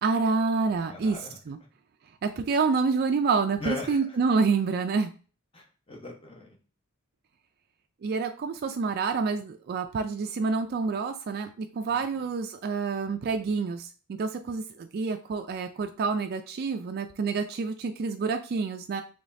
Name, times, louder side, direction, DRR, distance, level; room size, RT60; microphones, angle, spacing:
voice 1, 0.0-1.2 1.5-1.6 2.2-5.1 8.0-19.0, right 4 dB, 45° right, 6 dB, 0.3 m, -28 dB
voice 2, 0.9-1.4 3.6-4.2 5.5-6.6 11.9-12.0, left 2 dB, 25° left, 0 dB, 1.0 m, -39 dB
5.0 x 3.1 x 2.6 m, 0.37 s
head